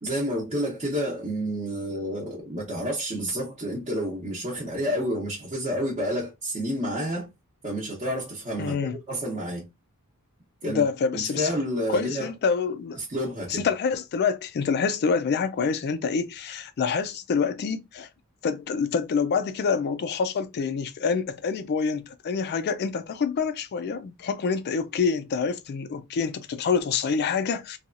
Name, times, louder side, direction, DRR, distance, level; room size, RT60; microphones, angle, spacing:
voice 1, 0.0-7.3 7.6-8.8 9.1-9.7 10.6-10.8 11.1-12.3 13.0-13.7, equal, 30° right, 0.7 m, -29 dB
voice 2, 8.6-9.0 10.6-11.5 11.9-13.0 13.5-18.1 18.4-27.8, left 5 dB, 50° left, 0.3 m, -26 dB
2.8 x 2.3 x 2.4 m
head